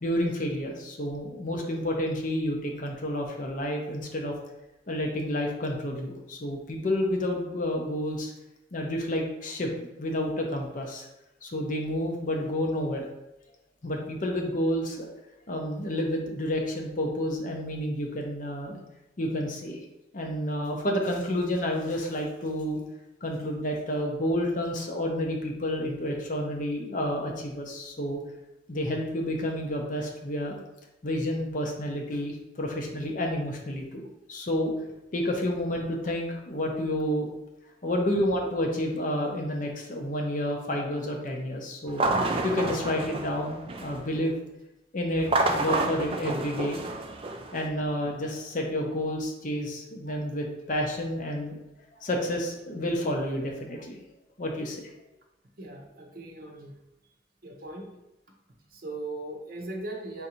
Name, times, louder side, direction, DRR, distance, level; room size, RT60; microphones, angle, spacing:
voice 1, 0.0-4.3 4.9-8.3 8.7-11.1 11.4-13.0 13.8-15.1 15.5-18.8 19.2-19.8 20.1-22.8 23.2-28.2 28.7-30.6 31.0-34.0 34.3-34.7 35.1-37.3 37.8-42.1 42.4-44.3 44.9-45.3 45.5-46.8 47.5-51.5 52.0-54.0 54.4-54.9, left 1 dB, 45° left, 0 dB, 0.7 m, -30 dB
sound 1, 41.9-44.1 45.1-47.7, right 2 dB, 30° right, 0.3 m, -29 dB
voice 2, 55.6-56.7 57.4-57.9 58.7-60.3, right 2 dB, 50° right, 1 dB, 0.8 m, -38 dB
3.9 x 2.6 x 4.3 m, 0.92 s
head